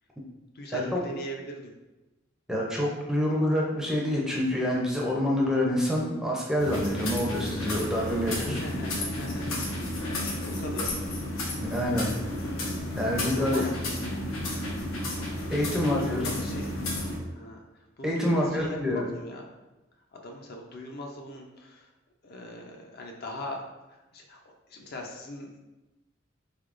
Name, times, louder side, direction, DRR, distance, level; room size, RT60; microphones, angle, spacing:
voice 1, 0.5-1.7 8.3-9.6 10.5-11.0 13.4-13.7 15.4-16.7 17.3-19.4 20.1-21.9 22.2-23.6 23.9-24.4 24.7-25.6, left 1 dB, 50° left, 1 dB, 0.5 m, -39 dB
voice 2, 2.5-8.6 11.6-12.1 13.0-13.6 15.5-16.3 18.0-19.0, left 1 dB, 5° right, -3 dB, 0.5 m, -27 dB
sound 1, 6.6-17.2, left 1 dB, 85° left, 0.8 m, -32 dB
3.7 x 3.4 x 2.5 m, 1.1 s
head